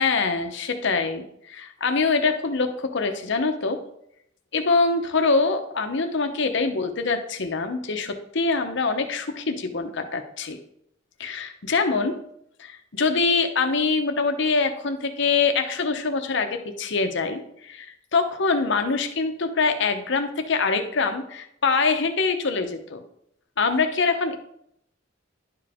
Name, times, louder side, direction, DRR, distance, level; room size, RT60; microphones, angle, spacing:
voice 1, 0.0-3.8 4.5-10.6 11.2-12.1 12.6-16.5 16.8-23.0 23.6-24.4, left 4 dB, 65° left, 6 dB, 0.9 m, -24 dB
11.0 x 4.9 x 3.6 m, 0.73 s
head